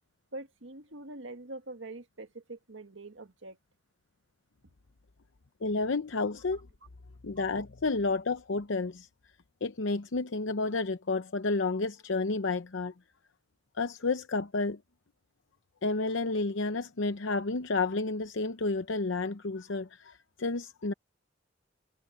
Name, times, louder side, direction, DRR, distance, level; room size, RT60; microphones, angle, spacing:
voice 1, 0.3-3.6 7.4-7.5, right 2 dB, 85° right, 1.8 m, -44 dB
voice 2, 5.6-6.6 7.2-9.1 9.6-12.9 13.8-14.8 15.8-20.9, left 3 dB, 85° left, 0.8 m, -31 dB
head